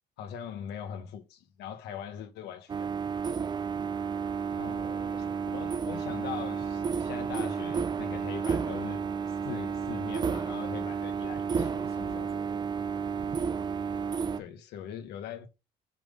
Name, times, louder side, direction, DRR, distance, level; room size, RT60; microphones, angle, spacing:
voice 1, 0.2-3.2 4.6-4.8 5.5-9.0 9.4-12.2 14.4-15.5, left 8 dB, 80° left, 1.2 m, -41 dB
sound 1, 2.7-14.4, right 6 dB, 25° right, 0.4 m, -32 dB
voice 2, 4.6-5.4 11.5-12.8, left 6 dB, 35° left, 1.4 m, -51 dB
6.0 x 3.4 x 5.4 m
cardioid pair, 110°, 17 cm